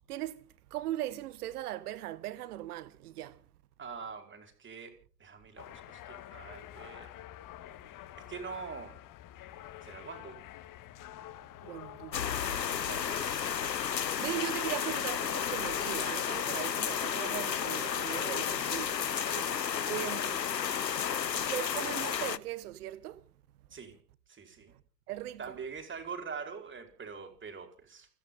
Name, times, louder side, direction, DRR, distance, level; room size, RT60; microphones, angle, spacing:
voice 1, 0.1-0.4 0.7-3.4 11.6-12.2 13.9-19.0 19.9-20.4 21.3-23.2 25.1-25.6, right 14 dB, 65° right, 1.6 m, -39 dB
voice 2, 3.8-4.9 5.2-7.1 7.9-9.0 9.8-10.4 12.8-13.2 19.1-19.6 23.7-24.0 24.3-24.7 25.4-28.1, right 5 dB, 25° right, 4.9 m, -44 dB
sound 1, 5.6-13.9, left 13 dB, 40° left, 1.9 m, -48 dB
sound 2, 12.1-22.4, left 8 dB, 90° left, 0.9 m, -32 dB
30.0 x 10.5 x 3.9 m
figure-of-eight pair, 80°, 49 cm